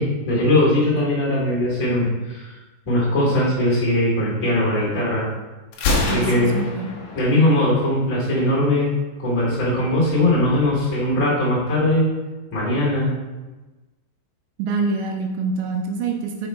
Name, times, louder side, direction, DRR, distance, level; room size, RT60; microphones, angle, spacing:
voice 1, 0.0-2.5 2.8-5.3 6.0-6.5 7.1-8.9 9.2-12.1 12.5-13.1, left 1 dB, 30° left, -6 dB, 1.5 m, -20 dB
Gunshot gunfire, 5.7-7.7, left 2 dB, 75° left, 1.9 m, -25 dB
voice 2, 6.1-6.9 14.6-16.5, right 4 dB, 85° right, 3 dB, 2.8 m, -25 dB
6.4 x 5.7 x 4.4 m, 1.2 s
omnidirectional pair, 5.3 m